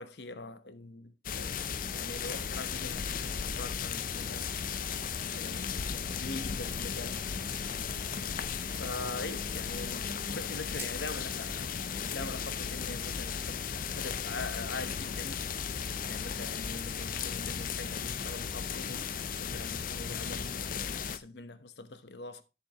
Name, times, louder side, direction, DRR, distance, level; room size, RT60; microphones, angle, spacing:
voice 1, 0.0-1.7 1.9-4.7 5.2-7.2 8.7-15.8 16.1-19.1 19.4-22.4, left 2 dB, 70° left, 0.9 m, -43 dB
sound 1, 1.2-21.2, left 6 dB, 50° left, 0.5 m, -35 dB
sound 2, 10.7-12.7 12.9-13.2 13.4-13.5 15.0-15.1, right 4 dB, 15° right, 1.0 m, -50 dB
10.0 x 6.9 x 3.0 m
head